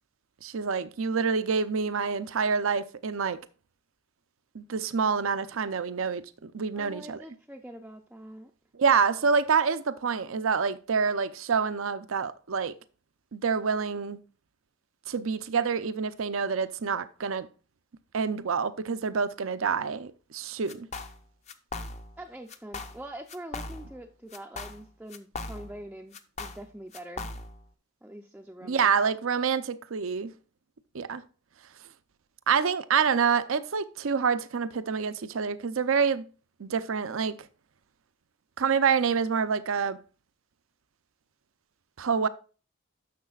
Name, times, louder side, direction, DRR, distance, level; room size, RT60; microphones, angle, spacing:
voice 1, 0.4-3.4 4.5-7.2 8.8-12.7 13.3-14.2 15.1-17.5 18.1-20.9 28.6-30.3 30.9-31.2 32.5-36.2 36.6-37.3 38.6-40.0 42.0-42.3, right 6 dB, 80° right, 0.6 m, -27 dB
voice 2, 6.7-8.5 22.2-27.3 28.0-28.9, right 1 dB, 5° right, 0.4 m, -44 dB
sound 1, 20.7-21.2 21.5-22.2 22.5-23.0 23.3-24.0 24.3-25.8 26.1-27.6, left 3 dB, 35° left, 0.6 m, -39 dB
10.5 x 6.6 x 2.4 m
head